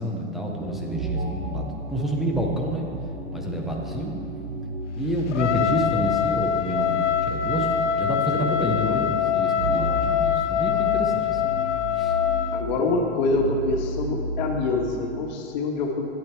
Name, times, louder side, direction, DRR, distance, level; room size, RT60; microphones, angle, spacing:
voice 1, 0.0-2.9 3.3-4.1 5.0-11.6 12.0-12.1, equal, ahead, -1 dB, 0.5 m, -29 dB
sound 1, 0.5-15.1, equal, 15° right, 1.3 m, -33 dB
Trumpet, 5.3-12.7, left 9 dB, 75° left, 0.7 m, -24 dB
voice 2, 12.5-16.1, left 3 dB, 40° left, 2 dB, 1.5 m, -25 dB
13.5 x 10.5 x 4.5 m, 2.7 s
hypercardioid pair, 155°, 36 cm